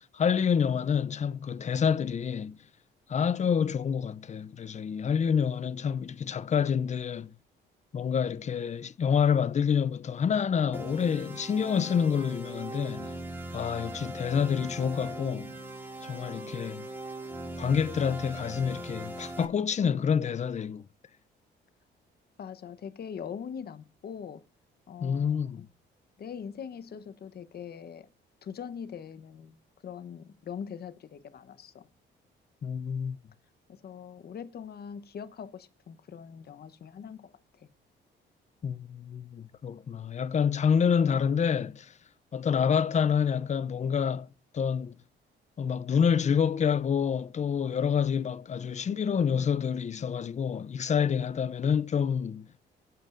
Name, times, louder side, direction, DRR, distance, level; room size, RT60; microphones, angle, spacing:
voice 1, 0.0-2.6 3.1-7.3 7.9-13.1 13.5-15.5 16.0-16.9 17.6-20.8 25.0-25.7 32.6-33.2 38.6-41.9 42.3-44.3 44.5-44.9 45.6-52.5, left 7 dB, 35° left, 0.5 m, -27 dB
sound 1, 10.7-19.4, right 1 dB, 10° right, 2.5 m, -40 dB
voice 2, 22.4-24.4 24.9-25.7 26.2-28.1 28.4-29.6 29.8-31.9 33.7-37.7, left 7 dB, 50° left, 0.9 m, -42 dB
18.5 x 8.5 x 2.5 m
cardioid pair, 90°, 20 cm